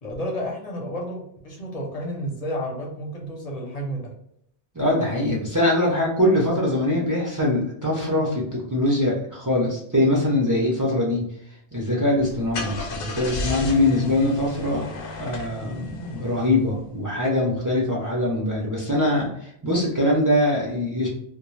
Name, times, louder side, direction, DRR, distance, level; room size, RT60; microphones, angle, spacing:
voice 1, 0.0-4.1, equal, 40° left, -2 dB, 0.7 m, -31 dB
voice 2, 4.7-11.2 11.7-21.1, left 1 dB, 25° right, -4 dB, 0.4 m, -23 dB
Car / Engine starting, 12.2-16.8, left 3 dB, 85° left, 0.9 m, -34 dB
2.3 x 2.2 x 3.1 m, 0.71 s
omnidirectional pair, 1.1 m